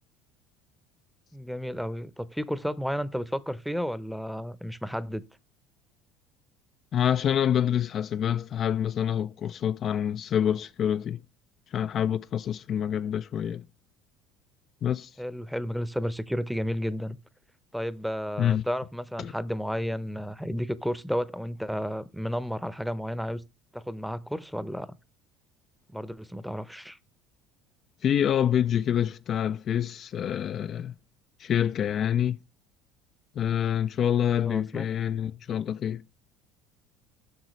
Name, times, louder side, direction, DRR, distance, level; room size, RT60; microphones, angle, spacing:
voice 1, 1.3-5.2 15.2-17.2 17.7-23.4 23.7-24.9 25.9-27.0 34.4-34.9, equal, ahead, 0.7 m, -32 dB
voice 2, 6.9-11.2 11.7-13.7 14.8-15.1 18.4-18.6 19.2-19.3 28.0-30.9 31.4-32.4 33.4-36.0, left 9 dB, 45° left, 0.3 m, -26 dB
8.0 x 6.2 x 3.1 m
supercardioid pair, 90°, 0 cm